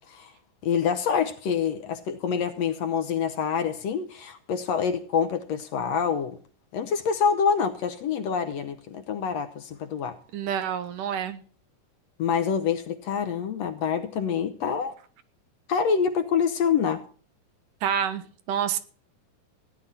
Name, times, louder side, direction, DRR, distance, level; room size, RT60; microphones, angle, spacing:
voice 1, 0.6-6.4 6.7-10.2 12.2-14.9 15.7-17.0, left 6 dB, 65° left, 1.8 m, -26 dB
voice 2, 10.3-11.4 17.8-18.8, right 8 dB, 85° right, 2.7 m, -28 dB
16.5 x 10.5 x 4.1 m
omnidirectional pair, 3.7 m